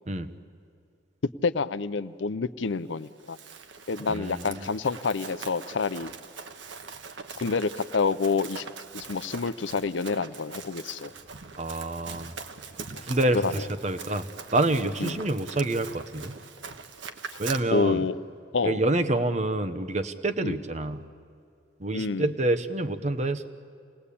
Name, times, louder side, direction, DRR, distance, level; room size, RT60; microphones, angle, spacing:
voice 1, 1.4-3.4 3.9-6.1 7.4-8.7 8.9-11.1 13.3-13.7 15.0-15.2 17.7-18.2 18.5-18.8 20.4-20.6 21.9-22.3, left 4 dB, 75° left, 14 dB, 0.6 m, -28 dB
Run, 3.0-17.6, right 5 dB, 75° right, 1.3 m, -42 dB
voice 2, 4.1-4.6 11.6-12.3 13.0-16.3 17.4-18.0 18.6-21.0 21.8-23.5, right 2 dB, 35° right, 10 dB, 1.0 m, -27 dB
27.5 x 19.5 x 8.5 m, 2.3 s
head